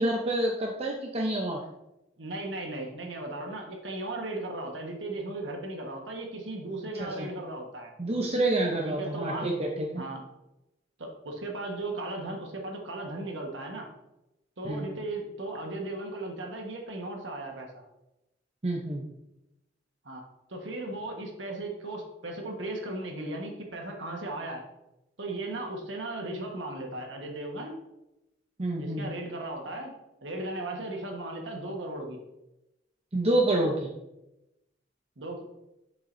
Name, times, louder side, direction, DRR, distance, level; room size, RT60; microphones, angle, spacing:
voice 1, 0.0-1.6 7.0-7.3 8.0-9.9 14.6-14.9 18.6-19.0 28.6-29.1 33.1-33.9, right 1 dB, 35° right, 0 dB, 0.8 m, -28 dB
voice 2, 2.2-7.9 8.8-9.5 9.9-10.3 11.0-13.9 14.6-17.8 20.0-20.2 20.5-24.6 25.2-27.8 28.8-29.9 30.2-32.2 35.2-35.4, right 2 dB, 75° right, 2 dB, 1.4 m, -36 dB
7.8 x 7.2 x 2.7 m, 0.91 s
head